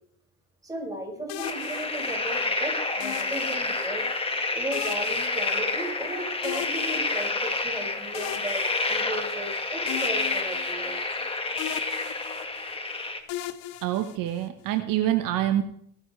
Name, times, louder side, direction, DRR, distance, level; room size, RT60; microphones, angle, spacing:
voice 1, 0.6-11.0, right 1 dB, 10° right, -2 dB, 6.1 m, -36 dB
sound 1, 1.3-2.5 3.0-4.1 4.7-6.1 6.4-7.6 8.1-9.5 9.9-11.3 11.6-12.8 13.3-14.7, left 13 dB, 70° left, 1.1 m, -38 dB
sound 2, 1.4-13.2, left 3 dB, 15° left, 1.8 m, -29 dB
voice 2, 13.8-15.6, right 12 dB, 65° right, 6 dB, 1.4 m, -26 dB
24.0 x 9.9 x 3.4 m, 0.67 s
supercardioid pair, 105°, 36 cm